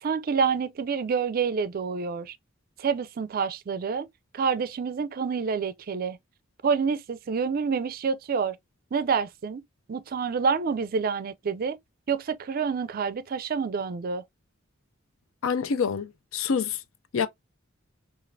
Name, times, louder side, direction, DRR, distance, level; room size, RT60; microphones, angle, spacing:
voice 1, 0.0-2.4 2.8-4.1 4.3-6.2 6.6-8.6 8.9-9.6 9.9-11.8 12.1-14.2, right 5 dB, 45° right, 0.4 m, -28 dB
voice 2, 15.4-16.8 17.1-17.3, left 6 dB, 80° left, 0.5 m, -27 dB
5.1 x 2.4 x 2.6 m
head